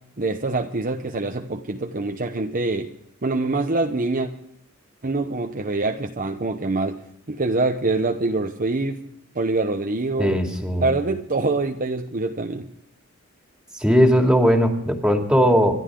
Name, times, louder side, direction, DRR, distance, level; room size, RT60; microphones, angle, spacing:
voice 1, 0.2-2.9 3.2-4.3 5.0-7.0 7.3-9.0 9.3-10.4 10.8-12.7, right 3 dB, 40° right, 4 dB, 0.9 m, -25 dB
voice 2, 10.2-10.9 13.7-15.7, equal, 5° right, 2 dB, 2.6 m, -18 dB
27.0 x 12.0 x 3.8 m, 0.76 s
head